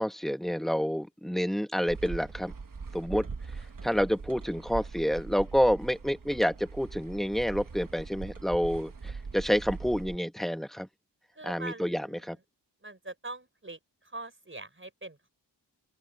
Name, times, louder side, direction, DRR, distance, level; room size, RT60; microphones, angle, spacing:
voice 1, 0.0-2.5 2.9-3.3 3.8-10.9 11.4-12.4, equal, ahead, 1.3 m, -28 dB
sound 1, 1.9-10.2, right 4 dB, 50° right, 1.2 m, -41 dB
voice 2, 11.3-12.3 12.8-13.8 14.0-15.3, right 2 dB, 30° right, 4.9 m, -43 dB
open air
wide cardioid pair, 80°, 42 cm